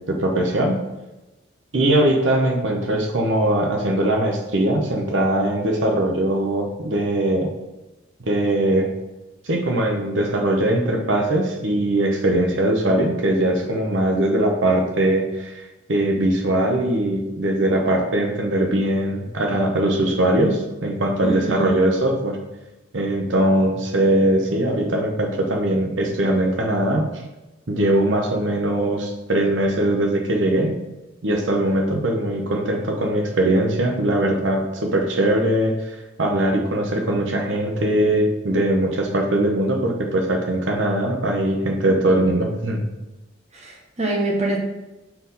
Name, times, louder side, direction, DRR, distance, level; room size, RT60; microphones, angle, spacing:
voice 1, 0.1-0.8 1.7-7.5 8.3-8.9 9.4-15.6 15.9-22.4 22.9-27.0 27.7-30.7 31.2-42.9, right 1 dB, 80° right, 2 dB, 0.9 m, -21 dB
voice 2, 21.2-21.8 43.5-44.6, right 2 dB, 35° right, -1 dB, 1.2 m, -24 dB
4.3 x 4.2 x 5.3 m, 1.0 s
head